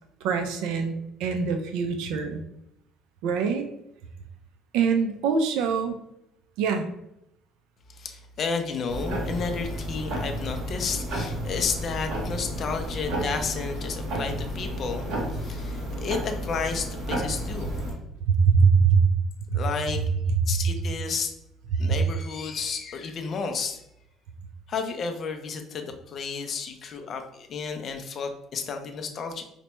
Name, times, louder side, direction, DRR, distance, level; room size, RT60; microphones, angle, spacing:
voice 1, 0.2-2.4 3.2-3.6 4.7-6.0 6.6-6.9 18.2-19.0 19.5-19.6 21.7-21.8, right 5 dB, 85° right, 6 dB, 0.4 m, -23 dB
voice 2, 7.9-17.8 19.5-20.0 20.5-21.3 21.7-23.8 24.7-29.4, left 5 dB, 35° left, 5 dB, 0.4 m, -32 dB
sound 1, 8.9-17.9, equal, 60° right, 1.0 m, -32 dB
4.3 x 2.2 x 2.9 m, 0.81 s
cardioid pair, 175°, 0 cm